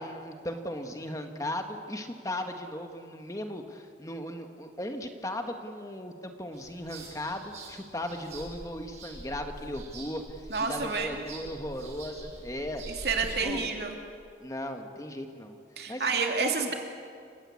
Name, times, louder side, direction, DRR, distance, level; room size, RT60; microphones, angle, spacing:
voice 1, 0.0-12.8 13.4-13.7 14.4-15.6 15.9-16.1 16.4-16.7, left 1 dB, 20° left, 5 dB, 1.5 m, -37 dB
sound 1, 6.5-13.3, right 1 dB, 40° right, 7.0 m, -45 dB
voice 2, 10.5-11.2 13.0-14.0 15.8-16.7, right 4 dB, 65° right, 2 dB, 2.8 m, -29 dB
28.5 x 16.0 x 8.4 m, 2.3 s
head